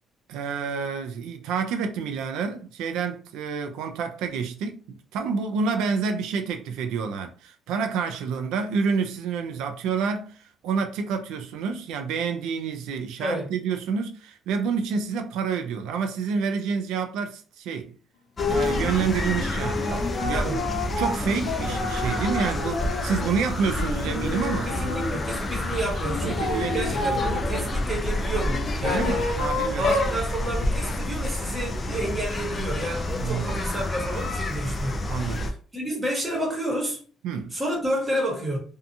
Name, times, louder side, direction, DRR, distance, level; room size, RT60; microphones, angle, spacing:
voice 1, 0.3-18.0 18.5-20.6 21.0-24.8 26.2-27.2 28.8-29.9 33.2-33.6 35.1-35.5 37.2-37.6, right 5 dB, 85° right, 0.4 m, -28 dB
sound 1, 18.4-18.8 19.3-23.3 23.8-25.3 26.0-27.7 28.5-30.2, left 3 dB, 75° left, 0.7 m, -30 dB
sound 2, 18.4-35.5, left 1 dB, 25° left, 0.4 m, -29 dB
voice 2, 24.7-29.2 29.8-37.0 37.5-38.6, right 1 dB, 15° right, 1.1 m, -30 dB
2.6 x 2.3 x 2.6 m
cardioid pair, 130°, 0 cm